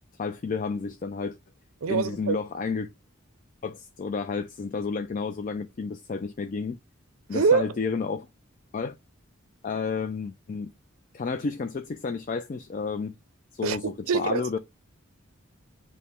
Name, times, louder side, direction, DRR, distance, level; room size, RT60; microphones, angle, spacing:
voice 1, 0.2-1.4 1.9-2.9 3.6-6.8 7.3-8.3 8.7-9.0 9.6-10.7 11.1-13.2 13.5-14.6, left 5 dB, 40° left, 0.3 m, -31 dB
voice 2, 1.8-2.4 7.3-7.7 13.6-13.8 14.1-14.5, right 5 dB, 90° right, 0.5 m, -24 dB
5.4 x 2.1 x 4.2 m
head